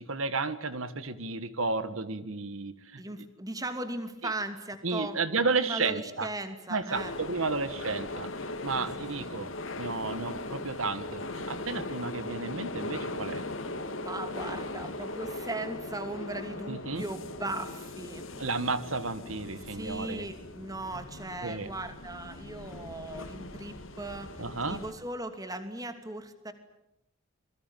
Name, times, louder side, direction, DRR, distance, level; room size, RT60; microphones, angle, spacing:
voice 1, 0.0-3.0 4.2-4.3 4.8-6.3 6.7-9.5 9.8-13.4 16.7-17.0 18.4-20.3 21.4-21.7 24.4-24.8, right 4 dB, 75° right, 12 dB, 1.6 m, -32 dB
voice 2, 3.0-5.2 5.6-7.1 8.7-8.9 9.2-9.4 14.0-18.3 19.7-26.5, right 2 dB, 20° right, 8 dB, 2.7 m, -38 dB
sound 1, 6.9-24.9, left 2 dB, 70° left, 2.9 m, -39 dB
27.0 x 22.5 x 9.1 m, 0.84 s
head